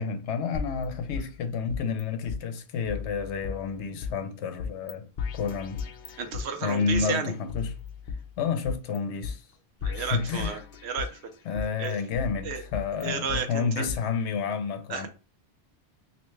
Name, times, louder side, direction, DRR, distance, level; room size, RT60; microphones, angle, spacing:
voice 1, 0.0-5.1 5.3-6.2 6.6-7.7 8.4-9.4 9.9-10.5 11.5-15.1, left 5 dB, 85° left, 0.9 m, -30 dB
sound 1, 0.5-2.0 2.3-2.4 2.9-4.1 4.6-4.9 5.2-7.0 7.5-9.0 9.2-9.3 9.8-11.2 11.5-13.4 13.9-14.0, left 6 dB, 60° left, 0.7 m, -36 dB
voice 2, 6.2-7.3 9.8-11.2 11.8-12.0 12.4-12.6 13.0-13.9 14.9-15.1, right 6 dB, 75° right, 0.9 m, -32 dB
3.3 x 2.7 x 3.1 m
omnidirectional pair, 1.1 m